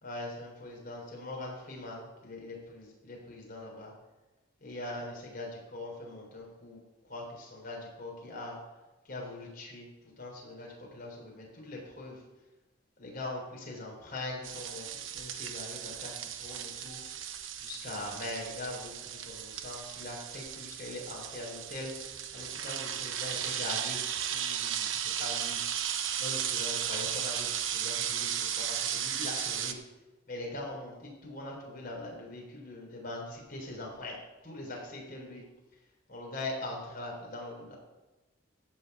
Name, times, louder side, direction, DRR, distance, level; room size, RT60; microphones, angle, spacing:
voice 1, 0.0-3.9 4.6-8.6 9.0-9.9 10.2-12.2 13.0-17.0 17.6-25.6 26.2-29.8 30.3-35.4 36.1-37.8, left 2 dB, 50° left, -2 dB, 3.9 m, -42 dB
sound 1, 14.4-29.7, right 9 dB, 80° right, 0.9 m, -35 dB
14.5 x 4.8 x 8.0 m, 1.1 s
head